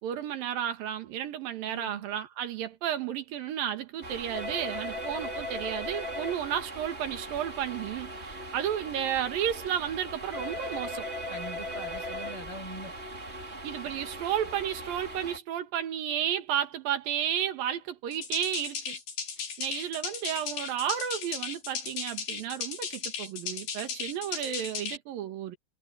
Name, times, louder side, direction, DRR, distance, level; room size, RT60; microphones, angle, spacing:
voice 1, 0.0-11.1 13.6-19.0 19.6-25.6, right 10 dB, 75° right, 3.5 m, -32 dB
voice 2, 1.6-2.1 11.3-12.9, equal, 35° left, 8.7 m, -43 dB
sound 1, 4.0-15.4, equal, 20° right, 2.6 m, -38 dB
sound 2, 18.1-25.0, left 6 dB, 80° left, 6.1 m, -36 dB
omnidirectional pair, 4.2 m